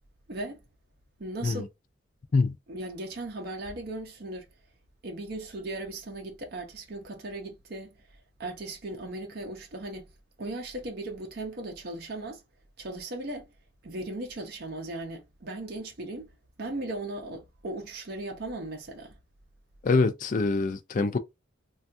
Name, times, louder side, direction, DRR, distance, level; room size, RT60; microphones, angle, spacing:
voice 1, 0.3-0.6 1.2-1.7 2.7-4.5 5.0-8.0 8.4-10.1 10.4-12.4 12.8-13.5 13.8-16.3 16.6-19.2, right 2 dB, 50° right, 0.6 m, -37 dB
voice 2, 19.8-21.2, left 3 dB, 40° left, 0.4 m, -25 dB
3.3 x 2.3 x 2.5 m
head